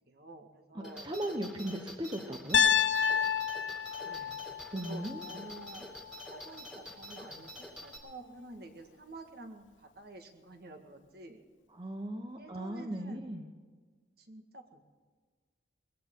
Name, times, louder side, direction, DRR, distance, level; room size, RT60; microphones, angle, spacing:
voice 1, 0.1-1.1 1.6-1.8 4.0-4.4 4.7-5.9 6.3-7.5 7.8-11.5 12.4-13.3 14.2-14.8, right 2 dB, 55° right, 5 dB, 1.7 m, -49 dB
voice 2, 0.7-2.6 4.7-5.2 11.8-13.5, right 1 dB, 25° right, 4 dB, 0.9 m, -37 dB
sound 1, 0.8-8.0, equal, 5° right, 2.3 m, -47 dB
Piano, 2.5-6.6, left 7 dB, 85° left, 0.7 m, -30 dB
21.5 x 16.5 x 3.8 m, 1.5 s
head